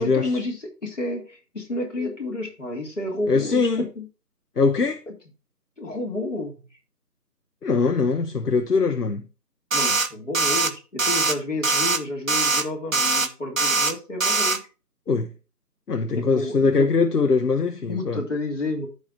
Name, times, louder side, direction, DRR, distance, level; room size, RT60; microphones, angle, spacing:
voice 1, 0.0-4.1 5.1-5.2 5.8-6.7 9.7-14.6 16.1-16.9 17.9-18.9, left 2 dB, 45° left, 3.2 m, -30 dB
voice 2, 3.3-3.8 4.6-5.0 7.6-9.2 15.1-15.3 15.9-18.2, left 4 dB, 70° left, 1.1 m, -22 dB
sound 1, 9.7-10.1 10.3-10.7 11.0-11.3 11.6-12.0 12.3-12.6 12.9-13.3 13.6-13.9 14.2-14.6, right 3 dB, 55° right, 0.8 m, -21 dB
14.0 x 5.0 x 2.7 m
figure-of-eight pair, 180°, 49 cm